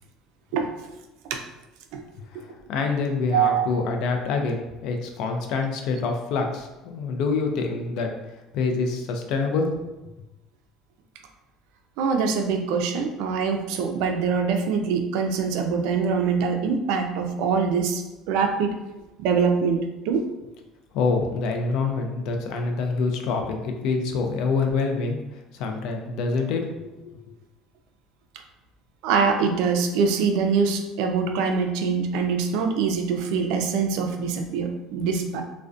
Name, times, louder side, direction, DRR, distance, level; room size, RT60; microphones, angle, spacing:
voice 1, 2.3-8.1 8.5-9.7 20.9-25.2 25.5-27.2, left 4 dB, 65° left, 4 dB, 0.4 m, -26 dB
voice 2, 3.3-3.7 12.0-18.8 19.2-20.3 29.0-35.4, right 5 dB, 80° right, 5 dB, 0.3 m, -24 dB
2.4 x 2.1 x 2.4 m, 1.0 s
cardioid pair, 125°, 0 cm